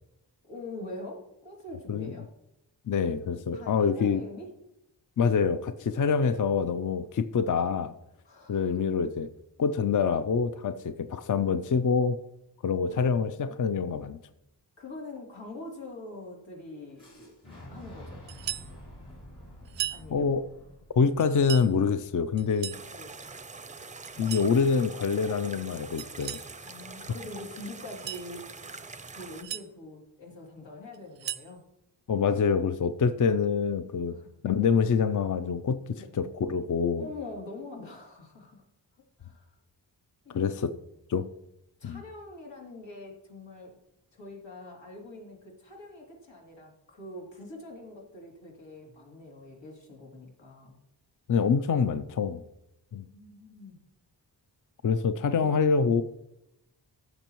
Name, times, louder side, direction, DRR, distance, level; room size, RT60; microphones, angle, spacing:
voice 1, 0.4-2.3 3.5-4.5 6.2-6.4 8.2-8.8 14.8-17.3 17.7-18.2 19.9-20.3 22.9-23.1 26.6-28.5 29.1-31.6 34.1-34.3 36.0-36.1 37.0-38.6 39.2-39.5 40.2-40.4 41.8-43.7 44.1-50.8 53.0-53.8 55.4-55.6, left 2 dB, 85° left, -1 dB, 3.0 m, -44 dB
voice 2, 2.9-4.2 5.2-7.9 8.5-9.3 9.6-12.2 12.6-14.2 20.1-20.5 21.0-22.7 24.2-26.4 32.1-34.2 34.4-37.0 40.3-40.7 41.1-41.3 41.8-42.0 51.3-52.4 52.9-53.1 54.8-56.0, left 6 dB, 45° left, 11 dB, 0.5 m, -26 dB
Fire / Explosion, 17.0-22.9, left 1 dB, 65° left, 4.1 m, -49 dB
sound 1, 18.3-18.7 19.7-20.0 21.2-21.7 22.4-22.9 24.0-24.5 26.0-26.5 27.8-28.3 29.1-29.7 30.9-31.5, right 12 dB, 90° right, 0.5 m, -37 dB
sound 2, 22.7-29.4, right 3 dB, 20° right, 0.4 m, -44 dB
15.5 x 6.8 x 3.0 m, 0.86 s
wide cardioid pair, 130°, 43 cm